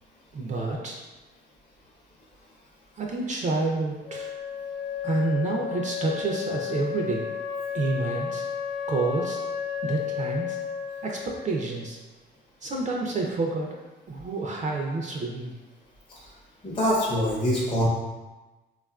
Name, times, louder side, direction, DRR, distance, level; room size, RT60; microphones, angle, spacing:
voice 1, 0.3-1.0 3.0-4.3 5.0-7.3 7.7-8.4 8.9-9.4 9.8-10.6 11.0-12.0 12.6-13.7 14.1-15.5, right 3 dB, 40° right, 0 dB, 0.4 m, -28 dB
Wind instrument woodwind instrument, 4.0-11.8, left 8 dB, 60° left, 0.6 m, -33 dB
voice 2, 16.6-17.9, equal, 25° left, -6 dB, 0.7 m, -24 dB
3.5 x 2.4 x 2.2 m, 1.2 s
cardioid pair, 90°, 20 cm